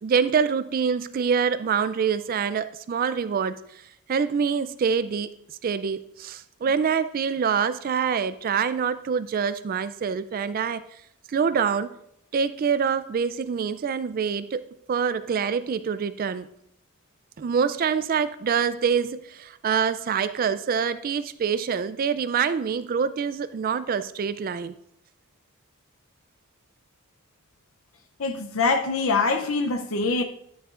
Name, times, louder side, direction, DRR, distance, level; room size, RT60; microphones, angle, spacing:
voice 1, 0.0-3.6 4.1-5.3 5.6-10.8 11.3-11.9 12.3-14.6 14.9-16.5 17.4-24.7, right 6 dB, 40° right, 0.3 m, -25 dB
voice 2, 28.2-30.2, left 4 dB, 65° left, 0.6 m, -24 dB
11.0 x 9.4 x 2.5 m
head